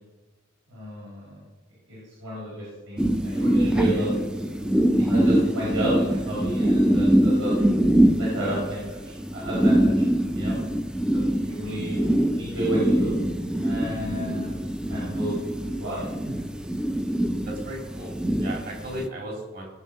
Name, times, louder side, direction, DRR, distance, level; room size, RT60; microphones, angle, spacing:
voice 1, 0.7-1.4 1.9-4.4 5.0-7.5 8.2-8.8 9.3-10.0 10.3-10.6 11.1-12.0 12.4-13.1 13.6-15.3 15.8-16.3, right 1 dB, 70° right, -7 dB, 5.1 m, -31 dB
sound 1, 3.0-19.1, right 1 dB, 5° right, 0.5 m, -24 dB
voice 2, 17.5-19.7, right 1 dB, 50° right, -1 dB, 3.8 m, -36 dB
19.0 x 8.0 x 5.5 m, 1.2 s
head